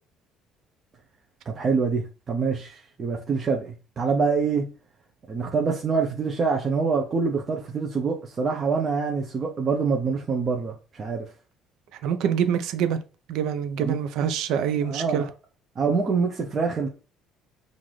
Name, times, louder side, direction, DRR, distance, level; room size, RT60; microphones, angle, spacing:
voice 1, 1.5-4.7 5.3-11.2 13.8-14.0 14.9-15.3 15.8-16.9, right 5 dB, 30° right, 0.6 m, -25 dB
voice 2, 12.0-13.0 13.3-15.3, right 8 dB, 70° right, 0.6 m, -25 dB
5.7 x 2.5 x 3.2 m
cardioid pair, 130°, 0 cm